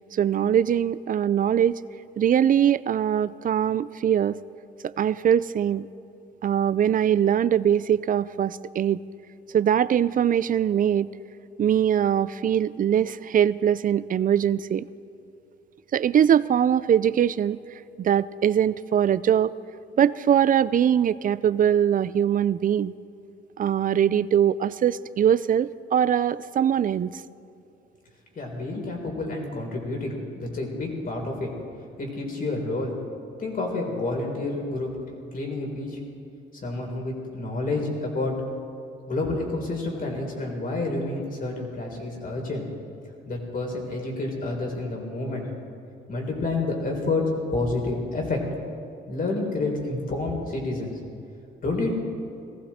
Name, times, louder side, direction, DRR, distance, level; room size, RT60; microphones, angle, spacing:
voice 1, 0.1-1.8 2.2-4.4 4.8-5.9 6.4-9.0 9.5-11.1 11.6-14.9 15.9-17.6 18.0-19.5 20.0-22.9 23.6-27.1, right 9 dB, 45° right, 17 dB, 0.4 m, -22 dB
voice 2, 28.4-31.5 32.0-33.0 33.4-34.9 35.3-36.0 36.6-38.4 39.1-42.7 43.3-45.5 46.1-47.2 47.5-48.4 49.1-50.9 51.6-51.9, left 2 dB, 45° left, 0 dB, 3.8 m, -29 dB
18.5 x 15.0 x 4.3 m, 2.6 s
cardioid pair, 90°, 20 cm